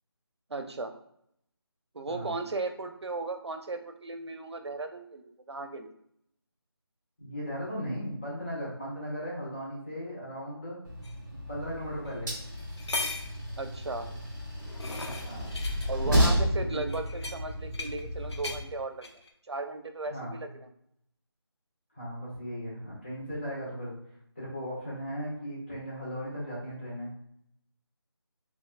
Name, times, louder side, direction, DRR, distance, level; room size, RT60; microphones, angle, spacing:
voice 1, 0.5-0.9 1.9-5.9 13.6-14.1 15.8-19.1 19.5-20.7, right 3 dB, 80° right, 7 dB, 0.6 m, -36 dB
voice 2, 7.2-10.8 11.5-12.3 15.2-15.5 16.6-16.8 20.1-20.4 21.9-23.9 24.3-27.1, equal, 25° left, -6 dB, 1.4 m, -37 dB
Train, 10.9-18.6, equal, 45° right, 1.3 m, -32 dB
sound 1, 11.0-11.1 12.0-12.2 12.6-13.4 14.3-15.9 16.9-18.0 18.3-18.6 19.0-19.3, left 2 dB, 80° left, 0.7 m, -37 dB
4.1 x 3.0 x 2.4 m, 0.73 s
figure-of-eight pair, 175°, 14 cm